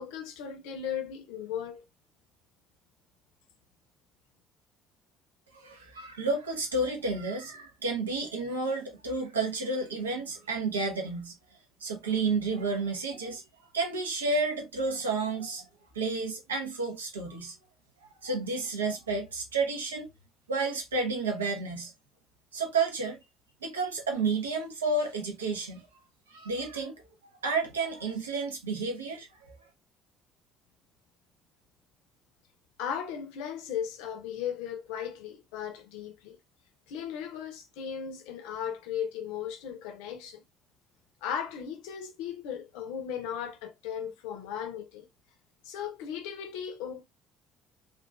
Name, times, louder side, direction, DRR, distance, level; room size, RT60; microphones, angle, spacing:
voice 1, 0.0-1.9 32.8-36.4 36.9-40.4 41.2-45.1 45.6-47.0, left 8 dB, 65° left, 0.5 m, -36 dB
voice 2, 5.5-11.4 11.8-13.4 13.7-15.7 15.9-17.5 18.2-20.1 20.5-21.9 22.5-23.2 23.6-25.8 26.3-26.9 27.4-29.5, right 3 dB, 80° right, 0.6 m, -31 dB
3.0 x 2.4 x 2.2 m
figure-of-eight pair, 50°, 0 cm